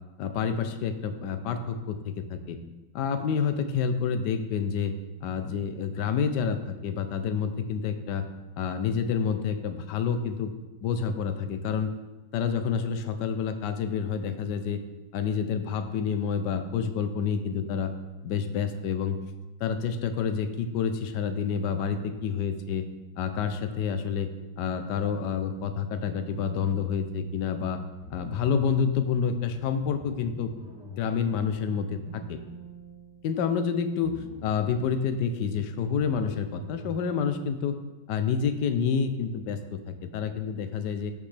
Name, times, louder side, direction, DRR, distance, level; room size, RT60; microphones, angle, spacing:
voice 1, 0.2-2.6 2.9-4.9 5.2-8.2 8.6-10.5 10.8-11.9 12.3-14.8 15.1-17.9 18.2-19.2 19.6-22.8 23.2-24.3 24.6-27.8 28.1-30.5 30.9-32.4 33.2-37.8 38.1-41.1, left 6 dB, 65° left, 8 dB, 1.2 m, -28 dB
sound 1, 25.3-27.6 28.0-28.9 29.5-33.6 34.0-34.8 35.5-37.3, equal, 5° right, 1.7 m, -47 dB
14.0 x 5.4 x 3.3 m, 1.1 s
omnidirectional pair, 2.1 m